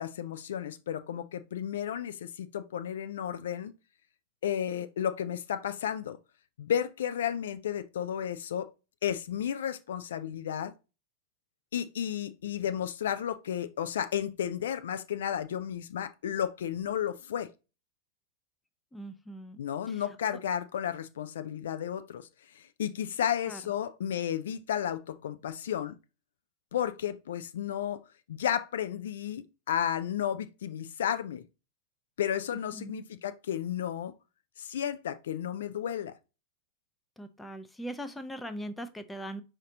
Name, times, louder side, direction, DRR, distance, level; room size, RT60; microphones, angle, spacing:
voice 1, 0.0-3.7 4.4-6.2 6.6-8.7 9.0-10.7 11.7-17.5 19.6-22.3 22.5-25.9 26.7-28.0 28.3-31.4 32.2-34.1 34.6-36.1, left 9 dB, 60° left, 0.3 m, -33 dB
voice 2, 18.9-19.6 19.9-20.0 23.5-23.6 32.7-33.0 37.2-39.4, equal, 5° left, 0.6 m, -40 dB
5.2 x 2.6 x 3.7 m
figure-of-eight pair, 90°, 0 cm